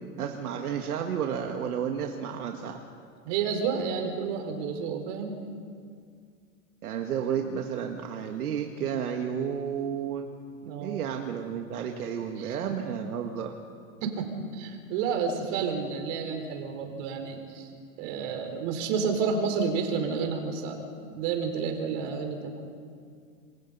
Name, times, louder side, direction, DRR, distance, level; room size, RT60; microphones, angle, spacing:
voice 1, 0.2-2.8 6.8-10.3 10.8-13.5, right 8 dB, 85° right, 4 dB, 1.9 m, -32 dB
voice 2, 3.2-5.3 10.6-11.0 12.4-12.8 14.0-17.7 18.0-20.8 21.1-22.7, right 5 dB, 55° right, 4 dB, 4.8 m, -30 dB
28.5 x 22.5 x 5.6 m, 2.2 s
hypercardioid pair, 120°, 44 cm